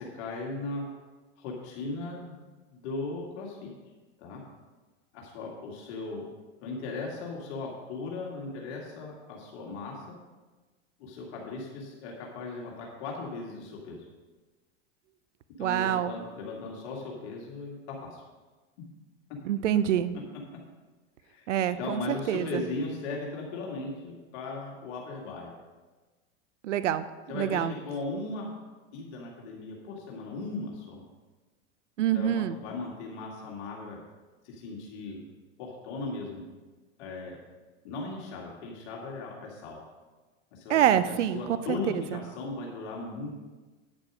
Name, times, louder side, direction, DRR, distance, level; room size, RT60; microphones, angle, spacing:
voice 1, 0.1-0.8 1.4-2.4 2.7-3.7 4.2-4.4 5.1-6.3 6.6-10.2 11.0-14.0 15.6-18.2 21.2-21.5 21.8-25.5 27.3-28.5 28.9-31.0 32.1-34.0 34.4-35.2 35.6-36.4 37.0-37.4 37.8-39.8 40.5-43.4, left 3 dB, 65° left, -2 dB, 2.3 m, -37 dB
voice 2, 15.6-16.1 19.4-20.1 21.5-22.6 26.6-27.1 27.3-27.7 32.0-32.6 40.7-41.4 41.7-42.2, right 10 dB, 90° right, 14 dB, 0.6 m, -26 dB
9.4 x 7.6 x 4.9 m, 1.3 s
hypercardioid pair, 100°, 35 cm